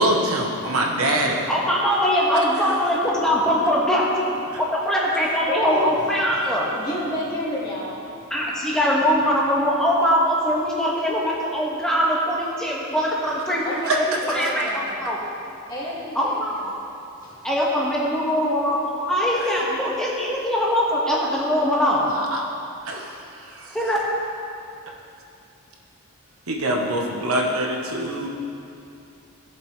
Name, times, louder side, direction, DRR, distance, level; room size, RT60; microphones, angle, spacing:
voice 1, 0.0-1.4 13.9-14.0 22.3-22.4 22.8-23.7 26.5-28.3, right 1 dB, 70° right, -1 dB, 1.2 m, -23 dB
voice 2, 1.5-4.3 4.6-6.7 8.3-15.2 16.1-16.7 17.4-22.1 23.7-24.0, equal, 5° left, -6 dB, 1.7 m, -22 dB
voice 3, 5.5-6.0 6.5-7.9 13.6-15.0 15.7-16.6 17.2-17.4 27.9-28.0, equal, 20° left, -7 dB, 2.3 m, -30 dB
17.5 x 7.5 x 3.3 m, 2.6 s
head